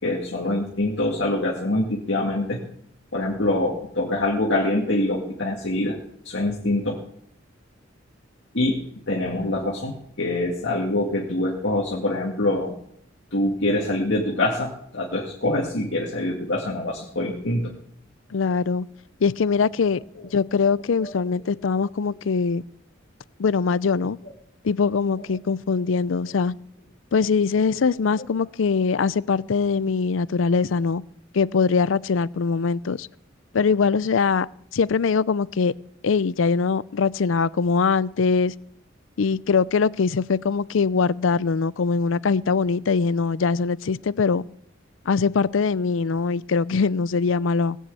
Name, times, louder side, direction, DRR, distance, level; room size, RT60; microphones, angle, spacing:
voice 1, 0.0-2.6 3.1-6.0 6.2-7.0 8.5-8.8 9.1-12.8 13.3-17.7 20.2-20.3 21.0-21.1 27.7-27.8, left 1 dB, 65° left, 2.2 m, -25 dB
voice 2, 18.3-18.9 19.2-20.0 20.3-22.6 23.4-24.2 24.6-26.5 27.1-31.0 31.3-33.1 33.5-34.5 34.7-35.7 36.0-38.5 39.2-44.4 45.1-47.8, left 5 dB, 80° left, 0.5 m, -22 dB
19.0 x 6.4 x 8.3 m
head